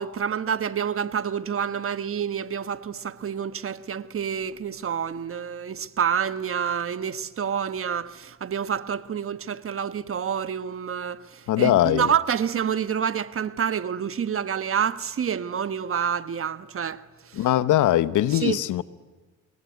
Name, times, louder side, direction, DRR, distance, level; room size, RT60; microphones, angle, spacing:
voice 1, 0.0-17.5 18.3-18.6, right 8 dB, 45° right, 1.3 m, -28 dB
voice 2, 11.5-12.1 17.4-18.8, left 13 dB, 70° left, 1.1 m, -21 dB
26.0 x 22.0 x 9.5 m
cardioid pair, 90°, 32 cm